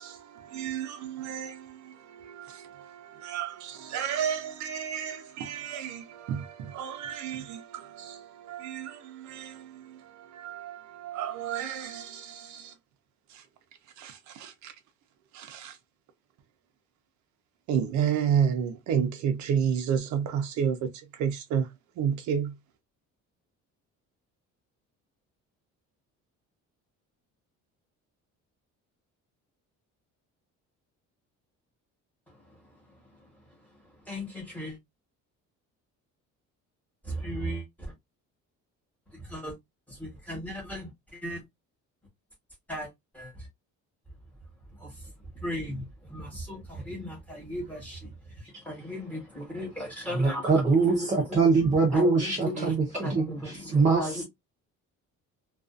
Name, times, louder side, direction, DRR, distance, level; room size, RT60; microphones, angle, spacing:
voice 1, 0.0-12.7 13.3-13.4 14.0-14.7 15.3-15.8 17.7-22.5, right 8 dB, 70° right, 0.5 m, -31 dB
voice 2, 32.3-34.8 37.0-37.9 39.1-39.6 39.9-41.4 42.7-43.5 44.7-51.4 51.9-54.2, equal, 5° left, 1.1 m, -37 dB
voice 3, 50.1-54.2, right 4 dB, 25° right, 0.6 m, -24 dB
2.4 x 2.3 x 2.4 m
cardioid pair, 170°, 30 cm